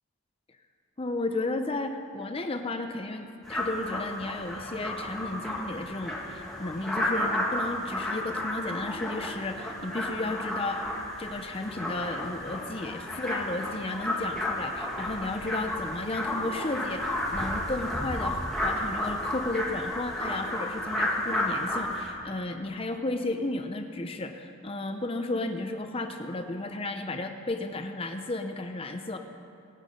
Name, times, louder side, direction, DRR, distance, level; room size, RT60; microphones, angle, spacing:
voice 1, 1.0-10.9 11.2-29.2, left 2 dB, 25° left, 6 dB, 0.6 m, -33 dB
sound 1, 3.4-22.1, left 1 dB, ahead, 2.2 m, -32 dB
25.0 x 8.3 x 5.3 m, 2.8 s
head